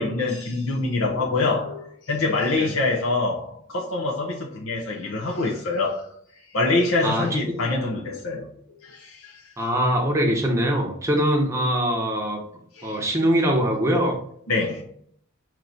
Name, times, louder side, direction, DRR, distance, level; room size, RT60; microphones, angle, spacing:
voice 1, 0.0-6.1 6.4-8.5 8.8-9.4 12.8-13.0 14.5-14.8, left 3 dB, 80° left, 0.8 m, -25 dB
voice 2, 7.0-7.4 9.6-12.4 12.8-14.2, equal, 15° right, 0.8 m, -22 dB
4.6 x 2.9 x 3.9 m
head